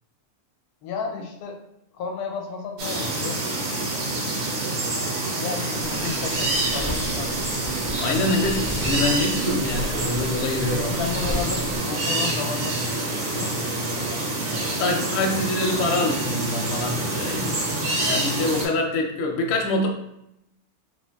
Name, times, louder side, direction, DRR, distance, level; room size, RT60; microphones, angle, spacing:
voice 1, 0.8-1.6 1.9-3.4 5.4-7.3 7.6-7.7 8.1-8.3 10.3-10.4 10.7-14.8, left 6 dB, 80° left, 2 dB, 1.1 m, -34 dB
sound 1, 2.8-18.7, right 2 dB, 80° right, 1.4 m, -27 dB
sound 2, 5.8-11.8, left 1 dB, 55° right, 1.4 m, -35 dB
voice 2, 8.0-11.0 14.8-19.9, left 2 dB, 65° left, 2 dB, 0.6 m, -25 dB
3.0 x 2.9 x 2.2 m, 0.82 s
omnidirectional pair, 1.6 m